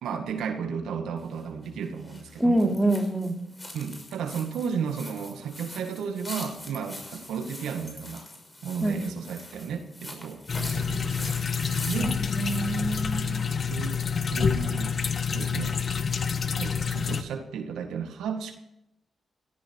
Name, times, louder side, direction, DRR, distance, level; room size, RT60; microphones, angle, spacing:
voice 1, 0.0-2.7 3.7-8.2 8.6-11.3 11.9-12.2 13.7-14.0 14.3-14.9 15.3-15.8 16.6-18.6, right 6 dB, 90° right, 5 dB, 2.0 m, -33 dB
sound 1, 1.2-13.5, left 2 dB, 25° left, 6.1 m, -43 dB
voice 2, 2.4-3.3 8.8-9.0 12.0-13.4, right 1 dB, 5° right, 2 dB, 3.0 m, -26 dB
sound 2, 10.5-17.2, left 6 dB, 55° left, 1.4 m, -28 dB
17.5 x 14.5 x 4.7 m, 0.83 s
cardioid pair, 60°, 0 cm